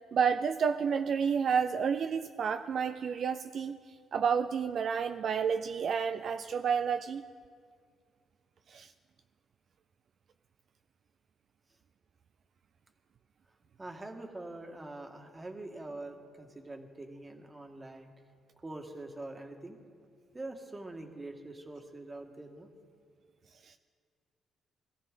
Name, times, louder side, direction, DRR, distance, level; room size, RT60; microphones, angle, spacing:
voice 1, 0.1-7.2 8.7-8.9 23.6-23.7, right 6 dB, 60° right, 9 dB, 0.4 m, -30 dB
voice 2, 13.8-18.1 18.6-19.8 20.3-22.7, right 2 dB, 20° right, 4 dB, 1.6 m, -44 dB
21.5 x 14.0 x 3.8 m, 2.1 s
cardioid pair, 90°, 0 cm